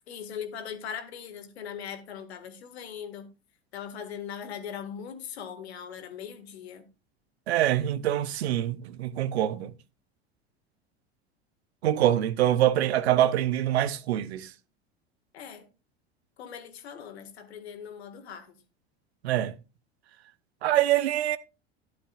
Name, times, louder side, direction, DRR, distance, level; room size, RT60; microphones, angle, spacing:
voice 1, 0.1-3.3 3.7-6.9 15.3-15.7 16.4-18.6, left 8 dB, 75° left, 2.0 m, -40 dB
voice 2, 7.5-9.7 11.8-14.5 19.2-19.6 20.6-21.4, right 12 dB, 75° right, 0.9 m, -25 dB
12.5 x 10.5 x 2.5 m
hypercardioid pair, 80°, 32 cm